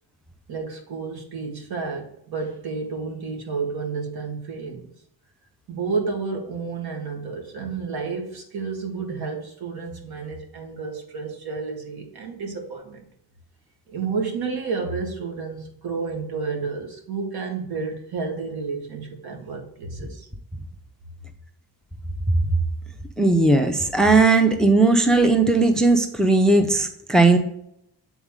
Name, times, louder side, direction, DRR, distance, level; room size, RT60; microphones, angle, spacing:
voice 1, 0.5-4.9 5.7-13.0 13.9-20.3, right 4 dB, 75° right, 2 dB, 1.8 m, -31 dB
voice 2, 23.2-27.4, right 3 dB, ahead, 6 dB, 0.5 m, -17 dB
7.5 x 4.1 x 3.6 m, 0.74 s
cardioid pair, 140°, 38 cm